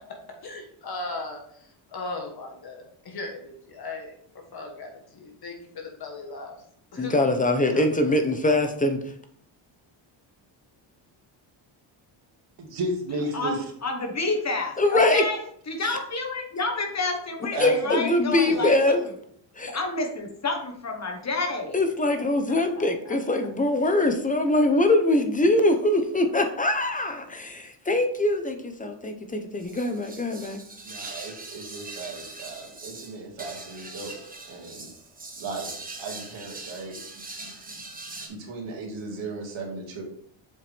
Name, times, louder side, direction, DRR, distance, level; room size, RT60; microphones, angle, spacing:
voice 1, 0.4-1.4 1.9-4.1 4.5-6.5 6.9-7.2 7.7-7.8, left 2 dB, 50° left, 1 dB, 1.5 m, -37 dB
voice 2, 7.0-9.1 14.8-15.3 15.8-16.0 17.5-19.0 19.5-19.8 21.7-30.6, left 2 dB, 15° left, 6 dB, 0.9 m, -23 dB
voice 3, 12.6-13.6 17.5-18.7 30.8-34.1 34.4-34.9 35.4-37.0 37.4-37.8 38.2-40.0, right 2 dB, 65° right, -2 dB, 2.4 m, -35 dB
voice 4, 13.8-15.4 15.7-18.8 19.7-21.7 22.7-22.8, left 3 dB, 35° left, 3 dB, 1.3 m, -29 dB
sound 1, 29.6-38.3, right 3 dB, 15° right, 1.2 m, -41 dB
7.5 x 4.6 x 3.5 m, 0.65 s
cardioid pair, 110°, 48 cm